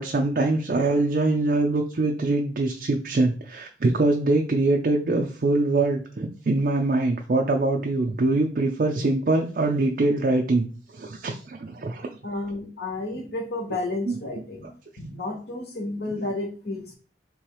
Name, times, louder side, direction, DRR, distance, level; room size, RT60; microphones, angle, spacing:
voice 1, 0.0-10.7 10.9-12.1 14.1-14.2 16.2-16.3, right 2 dB, 50° right, 2 dB, 0.4 m, -23 dB
voice 2, 12.2-14.7 15.0-16.9, left 2 dB, 60° left, 4 dB, 1.0 m, -31 dB
3.4 x 3.0 x 4.8 m, 0.40 s
head